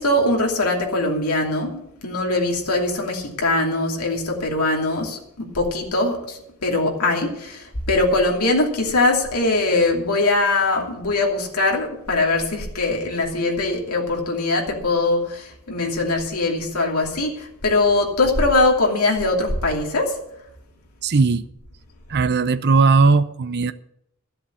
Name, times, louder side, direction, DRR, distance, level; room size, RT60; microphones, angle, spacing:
voice 1, 0.0-20.2, left 2 dB, 80° left, 2.7 m, -21 dB
voice 2, 21.0-21.4 22.1-23.7, right 4 dB, 50° right, 0.6 m, -17 dB
13.5 x 7.7 x 8.3 m
head